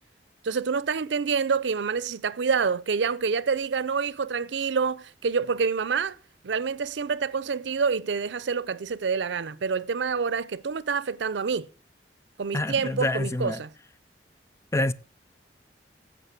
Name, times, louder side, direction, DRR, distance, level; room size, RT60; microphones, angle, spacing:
voice 1, 0.4-6.2 6.4-11.7 12.4-13.7, right 5 dB, 90° right, 0.5 m, -27 dB
voice 2, 12.5-13.6 14.7-14.9, left 2 dB, 15° left, 0.4 m, -27 dB
15.0 x 5.5 x 5.9 m
head